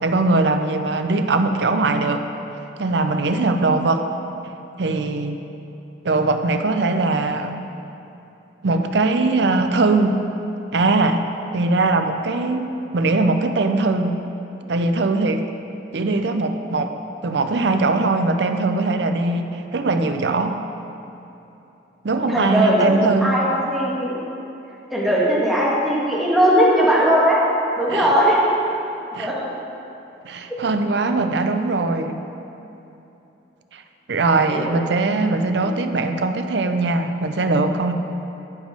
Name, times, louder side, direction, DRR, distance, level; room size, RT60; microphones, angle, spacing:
voice 1, 0.0-2.2 2.8-4.0 4.8-5.4 6.0-7.6 8.6-10.2 10.7-11.3 11.5-14.2 14.7-15.5 15.9-16.9 17.2-20.6 22.0-23.4 27.9-28.1 29.1-29.3 30.2-32.2 33.7-33.8 34.1-37.9, right 3 dB, 70° right, 7 dB, 0.5 m, -21 dB
voice 2, 22.3-24.2 24.9-27.4 27.8-28.4 29.2-29.5 34.5-34.6 35.6-35.7, equal, ahead, -7 dB, 1.5 m, -19 dB
10.5 x 5.2 x 5.1 m, 2.9 s
head